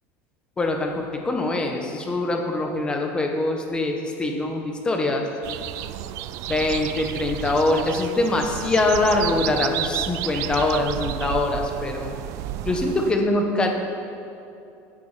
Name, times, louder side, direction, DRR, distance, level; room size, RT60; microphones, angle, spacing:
voice 1, 0.6-5.3 6.5-12.2 12.6-13.7, left 2 dB, 15° left, 3 dB, 1.2 m, -23 dB
sound 1, 5.4-13.1, right 13 dB, 55° right, 0.4 m, -31 dB
16.5 x 8.7 x 5.1 m, 2.6 s
cardioid pair, 160°, 6 cm